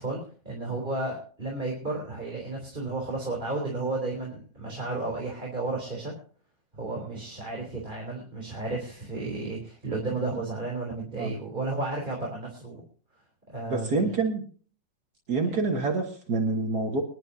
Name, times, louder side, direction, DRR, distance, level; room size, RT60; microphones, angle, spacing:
voice 1, 0.0-6.1 6.7-12.8 13.5-14.0 15.4-15.5, right 2 dB, 25° right, -2 dB, 3.7 m, -33 dB
voice 2, 13.7-14.4 15.3-17.0, right 3 dB, 55° right, 3 dB, 2.0 m, -27 dB
24.5 x 11.5 x 2.8 m, 0.41 s
omnidirectional pair, 2.0 m